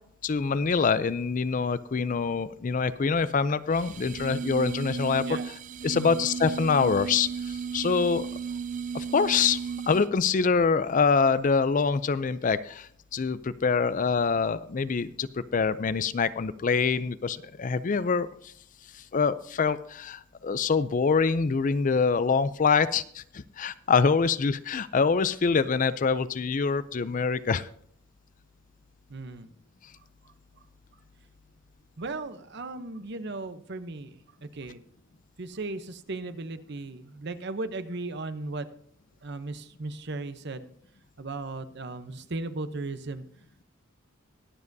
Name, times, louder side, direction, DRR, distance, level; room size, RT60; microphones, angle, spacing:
voice 1, 0.2-5.4 5.8-8.3 8.9-18.5 19.1-27.7, left 5 dB, 40° left, 15 dB, 0.4 m, -25 dB
sound 1, 3.7-10.2, right 6 dB, 35° right, 0.4 m, -35 dB
voice 2, 29.1-29.5 32.0-34.8 35.4-38.7 39.2-40.7 41.2-43.2, right 2 dB, 55° right, 11 dB, 0.8 m, -36 dB
22.5 x 7.4 x 2.7 m, 0.64 s
head